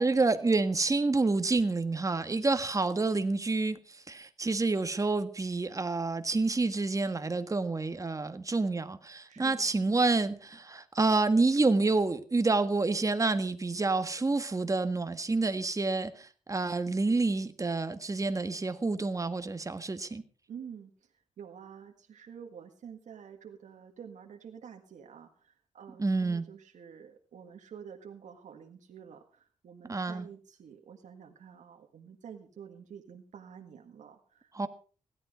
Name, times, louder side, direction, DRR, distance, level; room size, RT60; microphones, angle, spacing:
voice 1, 0.0-3.8 4.1-20.2 26.0-26.4 29.9-30.3 34.5-34.7, right 3 dB, 25° right, 1.6 m, -28 dB
voice 2, 9.3-9.8 20.5-20.9 21.4-34.7, right 7 dB, 85° right, 1.8 m, -49 dB
16.5 x 12.5 x 5.1 m
cardioid pair, 90°, 12 cm